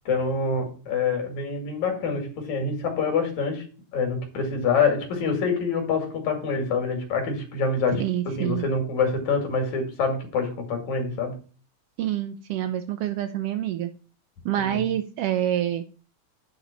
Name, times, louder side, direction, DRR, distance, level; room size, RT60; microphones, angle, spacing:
voice 1, 0.1-3.7 3.9-11.4 14.6-14.8, left 4 dB, 70° left, 3.4 m, -26 dB
voice 2, 8.0-8.7 12.0-13.9 14.4-15.8, right 11 dB, 80° right, 1.4 m, -27 dB
10.0 x 3.9 x 7.2 m
omnidirectional pair, 3.3 m